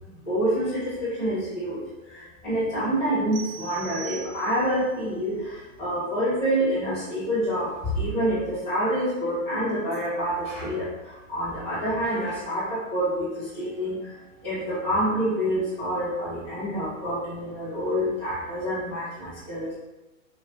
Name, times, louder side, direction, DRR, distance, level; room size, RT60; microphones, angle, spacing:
voice 1, 0.0-19.7, equal, 5° right, -26 dB, 0.3 m, -27 dB
sound 1, 3.3-4.9, right 8 dB, 75° right, 1.3 m, -40 dB
6.2 x 3.0 x 2.8 m, 1.1 s
hypercardioid pair, 160°, 41 cm